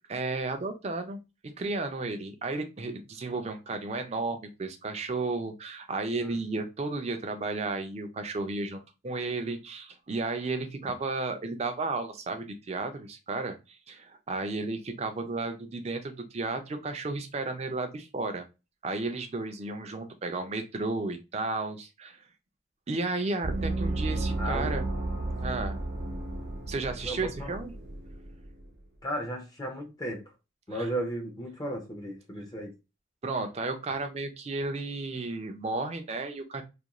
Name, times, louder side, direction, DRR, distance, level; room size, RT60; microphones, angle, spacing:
voice 1, 0.1-18.4 18.8-22.2 22.9-24.8 25.4-25.8 26.7-27.7 30.8-30.9 33.2-36.6, right 3 dB, 35° right, 7 dB, 0.4 m, -33 dB
Gong, 23.4-28.7, right 2 dB, 70° right, 0.8 m, -33 dB
voice 2, 24.4-24.8 25.4-25.6 27.0-27.6 29.0-30.3 30.7-32.7, right 1 dB, 20° left, 2 dB, 0.5 m, -35 dB
2.4 x 2.2 x 2.9 m, 0.27 s
head